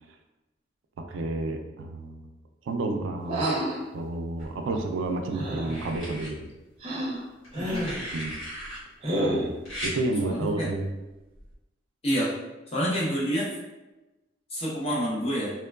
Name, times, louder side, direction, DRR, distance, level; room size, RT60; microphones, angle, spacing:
voice 1, 1.1-2.2 2.7-3.5 3.9-6.5 8.1-8.3 9.2-9.5 9.8-10.9, right 2 dB, 85° right, 4 dB, 0.3 m, -30 dB
sound 1, 3.3-3.8 5.3-5.8 6.8-7.2 7.5-8.0 9.0-9.6, right 1 dB, 30° right, 0.6 m, -29 dB
sound 2, 4.4-5.1 5.6-6.3 7.4-8.8 9.7-10.0 11.3-11.5, equal, 85° left, 1.3 m, -37 dB
voice 2, 7.6-7.9 10.2-10.7 12.0-12.3 12.7-13.5 14.5-15.5, equal, 35° left, -5 dB, 0.7 m, -28 dB
3.0 x 2.1 x 2.2 m, 1.0 s
head